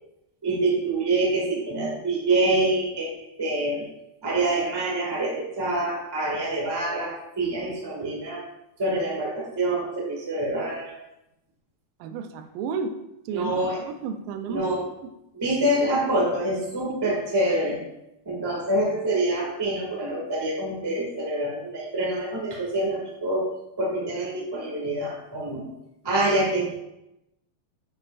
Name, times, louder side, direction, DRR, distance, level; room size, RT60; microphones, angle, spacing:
voice 1, 0.4-3.1 3.4-3.8 4.2-8.4 8.8-11.0 13.3-13.8 14.5-14.8 15.3-17.8 18.2-23.5 23.8-25.6 26.0-26.7, right 1 dB, 15° right, -4 dB, 0.7 m, -26 dB
voice 2, 12.0-13.0 13.3-14.7 17.0-17.1, right 5 dB, 80° right, 7 dB, 2.3 m, -32 dB
8.5 x 7.6 x 2.5 m, 0.88 s
omnidirectional pair, 4.3 m